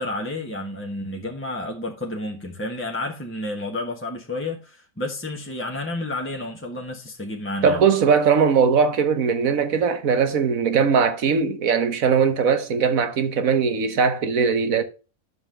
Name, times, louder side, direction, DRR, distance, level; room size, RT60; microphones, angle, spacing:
voice 1, 0.0-7.8, left 2 dB, 10° left, 1.4 m, -30 dB
voice 2, 7.6-14.8, right 6 dB, 80° right, 1.6 m, -20 dB
10.0 x 7.2 x 3.4 m
omnidirectional pair, 1.4 m